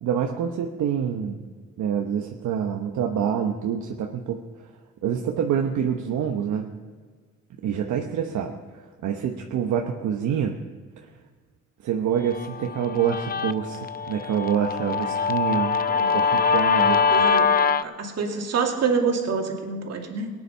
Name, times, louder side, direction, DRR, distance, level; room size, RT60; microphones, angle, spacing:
voice 1, 0.0-1.4 1.8-4.4 5.0-6.7 7.6-8.5 9.0-10.5 11.8-15.8 16.1-17.0, right 8 dB, 75° right, 3 dB, 1.1 m, -26 dB
Guitar, 12.3-17.8, left 5 dB, 30° left, 0.6 m, -23 dB
voice 2, 16.7-17.5 17.8-20.3, right 5 dB, 60° right, 2 dB, 2.6 m, -27 dB
18.0 x 9.9 x 5.6 m, 1.5 s
cardioid pair, 90°, 30 cm